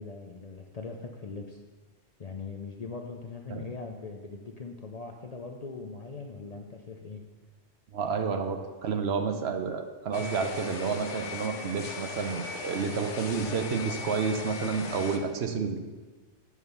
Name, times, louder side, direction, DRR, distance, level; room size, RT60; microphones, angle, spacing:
voice 1, 0.0-1.6 2.2-7.2, left 4 dB, 45° left, 3 dB, 0.5 m, -41 dB
voice 2, 7.9-15.8, right 5 dB, 70° right, 6 dB, 0.9 m, -30 dB
sound 1, 10.1-15.2, left 4 dB, 85° left, 1.1 m, -38 dB
8.9 x 4.8 x 5.4 m, 1.3 s
omnidirectional pair, 1.2 m